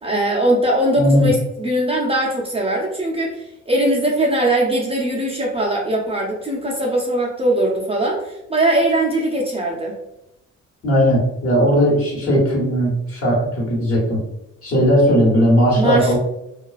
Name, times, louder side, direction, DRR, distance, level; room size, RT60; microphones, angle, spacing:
voice 1, 0.0-9.9 15.8-16.2, right 1 dB, 20° right, -3 dB, 0.4 m, -20 dB
voice 2, 0.9-1.3 10.8-14.2 14.6-16.2, equal, 50° left, -4 dB, 1.1 m, -17 dB
2.3 x 2.3 x 2.3 m, 0.88 s
cardioid pair, 90°, 30 cm